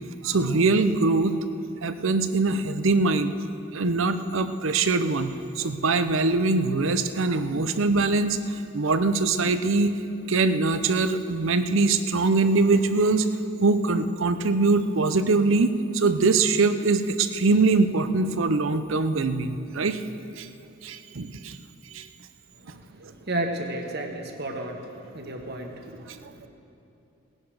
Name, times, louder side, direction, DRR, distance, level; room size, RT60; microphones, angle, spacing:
voice 1, 0.2-1.4 1.8-3.3 3.7-10.0 10.3-13.3 13.6-20.0 20.4-20.5 20.8-21.6 21.9-22.1 23.0-23.1, right 3 dB, 65° right, 10 dB, 0.7 m, -23 dB
voice 2, 23.3-26.5, right 1 dB, 50° right, 3 dB, 1.4 m, -32 dB
18.5 x 11.0 x 4.8 m, 3.0 s
head